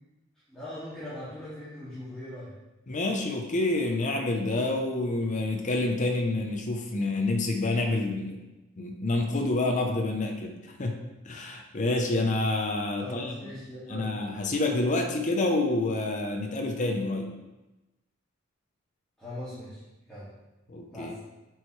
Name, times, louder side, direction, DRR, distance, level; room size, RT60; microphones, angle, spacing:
voice 1, 0.5-2.5 13.0-14.2 19.2-19.8 20.1-20.3 20.9-21.2, left 1 dB, 5° left, -13 dB, 2.1 m, -40 dB
voice 2, 2.9-8.4 8.8-10.9 11.2-13.5 13.9-17.3 20.7-21.1, left 2 dB, 35° left, 2 dB, 0.6 m, -28 dB
7.7 x 4.7 x 3.2 m, 1.0 s
head